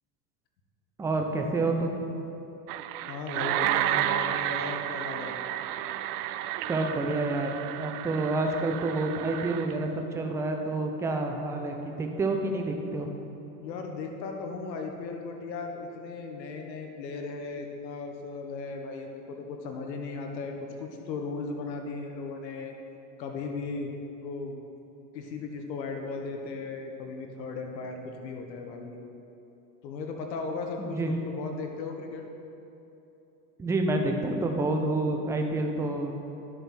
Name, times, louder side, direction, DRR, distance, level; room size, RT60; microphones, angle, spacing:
voice 1, 1.0-2.0 6.7-13.1 30.8-31.1 33.6-36.2, right 2 dB, 5° right, 3 dB, 0.3 m, -28 dB
sound 1, 2.7-9.8, right 12 dB, 65° right, 0.5 m, -31 dB
voice 2, 3.1-5.4 13.6-20.5 20.8-22.7 23.2-23.9 24.2-24.5 25.1-29.0 29.8-32.3, left 4 dB, 85° left, 3 dB, 1.4 m, -36 dB
11.0 x 6.8 x 4.4 m, 3.0 s
supercardioid pair, 115°, 49 cm